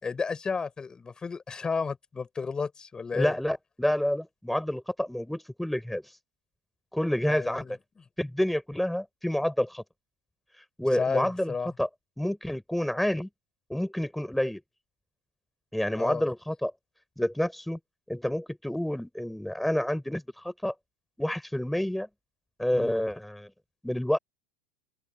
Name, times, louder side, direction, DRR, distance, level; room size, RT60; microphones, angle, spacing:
voice 1, 0.0-3.3 7.2-7.8 10.9-11.7 16.0-16.2 22.7-23.0, left 5 dB, 20° left, 5.8 m, -32 dB
voice 2, 3.1-6.2 6.9-7.8 8.2-9.8 10.8-11.5 11.8-11.9 12.2-13.3 13.7-14.6 15.7-16.7 17.2-17.8 18.1-20.7 21.2-22.1 22.6-23.5 23.8-24.2, left 1 dB, 5° left, 4.8 m, -28 dB
open air
hypercardioid pair, 100°, 4 cm